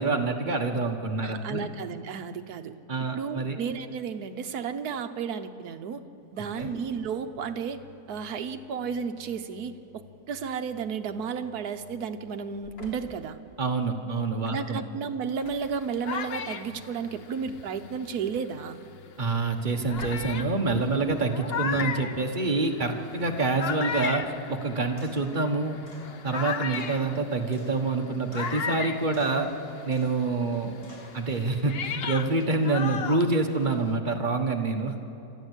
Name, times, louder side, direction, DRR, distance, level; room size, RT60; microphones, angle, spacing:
voice 1, 0.0-1.7 2.9-3.6 6.5-6.7 13.6-14.8 19.2-25.8 26.2-29.5 29.8-30.8 31.1-35.1, right 3 dB, 30° right, 3 dB, 1.3 m, -27 dB
voice 2, 1.2-2.7 3.1-6.0 6.3-7.8 8.1-13.4 14.5-18.8, right 6 dB, 65° right, 7 dB, 1.4 m, -33 dB
Engine / Slam, 6.1-21.3, left 1 dB, 85° left, 3.7 m, -52 dB
sound 1, 15.6-18.6 19.3-19.4 19.9-29.9 30.2-33.9, left 6 dB, 55° left, 0.6 m, -36 dB
sound 2, 25.0-25.4 25.9-26.1 26.7-28.0 28.3-28.8 29.1-29.5 29.9-30.3 30.8-31.2, equal, 25° left, 6.8 m, -50 dB
27.5 x 13.0 x 8.2 m, 2.8 s
omnidirectional pair, 1.9 m